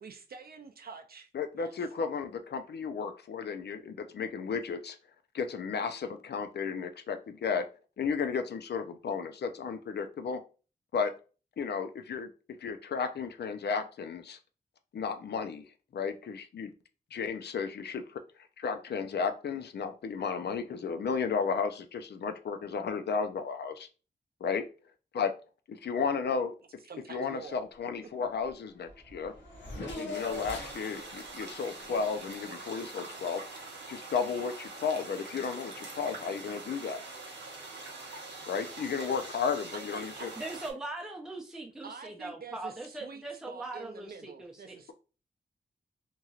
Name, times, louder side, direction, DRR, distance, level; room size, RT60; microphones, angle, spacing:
voice 1, 0.0-1.3 1.6-1.7 26.8-27.6 28.0-28.1 39.7-40.5 41.8-44.9, right 5 dB, 60° right, 0.4 m, -47 dB
voice 2, 1.3-5.0 5.3-7.7 8.0-10.4 10.9-11.1 11.6-12.3 12.6-14.4 14.9-15.7 15.9-16.7 17.1-18.2 18.6-23.9 24.4-24.6 25.1-25.3 25.7-26.5 27.1-29.3 29.9-33.4 33.9-37.0 38.5-40.3, left 5 dB, 65° left, 0.5 m, -33 dB
Race car auto racing / Accelerating revving vroom, 28.5-28.6 28.8-32.8, left 2 dB, 85° left, 0.8 m, -43 dB
sound 1, 30.1-40.7, right 3 dB, 80° right, 0.8 m, -44 dB
voice 3, 40.4-44.8, right 2 dB, 5° right, 0.5 m, -41 dB
3.0 x 2.7 x 2.4 m
wide cardioid pair, 80°, 18 cm